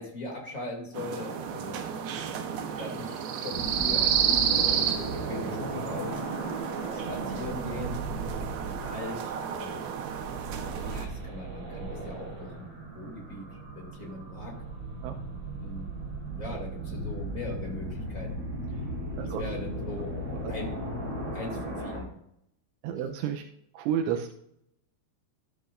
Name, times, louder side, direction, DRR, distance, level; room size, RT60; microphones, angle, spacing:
voice 1, 0.0-1.8 2.7-6.2 7.1-8.0 8.7-9.8 10.9-14.6 15.6-15.9 16.3-18.8 19.2-20.2 20.5-20.8 21.3-22.1, left 2 dB, 25° left, -1 dB, 1.9 m, -40 dB
sound 1, 0.9-11.0, right 8 dB, 70° right, 2.4 m, -31 dB
sound 2, 3.5-22.0, right 3 dB, 45° right, 4.7 m, -37 dB
sound 3, 16.9-22.1, left 8 dB, 85° left, 3.3 m, -40 dB
voice 2, 22.8-23.4 23.7-24.3, right 9 dB, 85° right, 5 dB, 3.1 m, -30 dB
13.0 x 10.5 x 2.6 m, 0.73 s
omnidirectional pair, 5.4 m